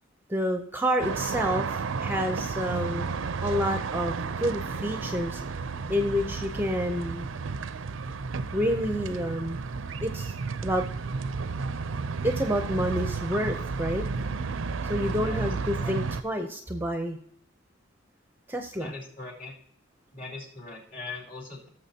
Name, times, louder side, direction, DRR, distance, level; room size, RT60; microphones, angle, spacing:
voice 1, 0.3-3.1 3.4-5.4 5.9-7.3 8.5-9.6 10.0-10.3 10.6-10.8 12.2-14.1 14.8-17.2 18.5-18.9, equal, 10° right, 5 dB, 0.6 m, -29 dB
sound 1, 1.0-16.2, right 4 dB, 75° right, 0.5 m, -32 dB
voice 2, 15.1-15.9 18.8-19.5 20.1-21.7, left 3 dB, 45° left, -2 dB, 2.8 m, -41 dB
17.0 x 6.8 x 2.8 m, 0.66 s
head